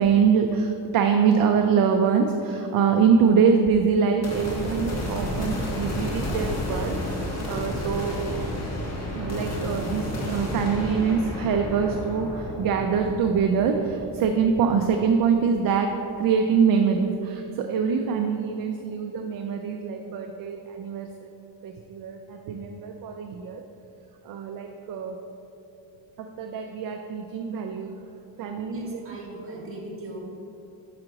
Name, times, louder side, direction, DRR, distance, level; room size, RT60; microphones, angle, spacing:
voice 1, 0.0-8.2 9.1-15.9 16.2-21.3 21.6-23.6 24.3-25.2 26.2-27.9 28.4-29.0, right 6 dB, 50° right, 4 dB, 0.4 m, -24 dB
sound 1, 4.2-15.6, left 1 dB, 35° left, 1.2 m, -31 dB
voice 2, 28.7-30.3, right 1 dB, 30° right, -1 dB, 1.5 m, -39 dB
5.9 x 5.8 x 3.8 m, 2.9 s
cardioid pair, 125°, 46 cm